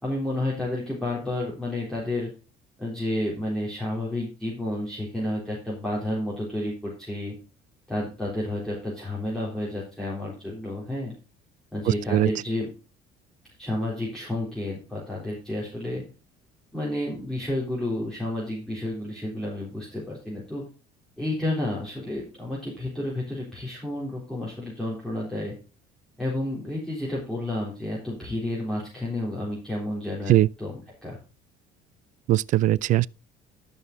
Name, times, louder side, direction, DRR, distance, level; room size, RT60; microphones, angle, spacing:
voice 1, 0.0-2.3 2.8-7.3 7.9-11.1 11.7-12.7 13.6-16.0 16.7-20.6 21.2-25.5 26.2-31.2, left 1 dB, 5° left, 3.7 m, -31 dB
voice 2, 11.9-12.3 30.3-30.5 32.3-33.1, right 15 dB, 50° right, 0.4 m, -20 dB
12.5 x 5.9 x 4.1 m
cardioid pair, 125°, 17 cm